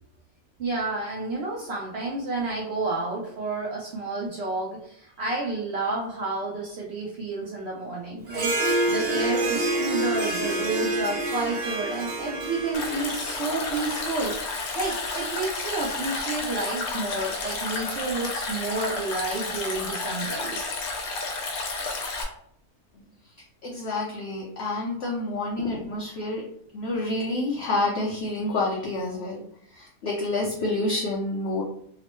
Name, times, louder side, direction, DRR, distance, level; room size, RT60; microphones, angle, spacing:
voice 1, 0.6-20.7, right 2 dB, 60° right, -2 dB, 0.7 m, -30 dB
Harp, 8.3-14.0, right 2 dB, 90° right, 1.3 m, -28 dB
Stream, 12.7-22.2, left 3 dB, 80° left, 1.1 m, -31 dB
voice 2, 23.6-26.4 26.7-29.4 29.7-31.6, left 2 dB, 60° left, -4 dB, 0.7 m, -28 dB
2.9 x 2.0 x 3.0 m, 0.69 s
omnidirectional pair, 1.6 m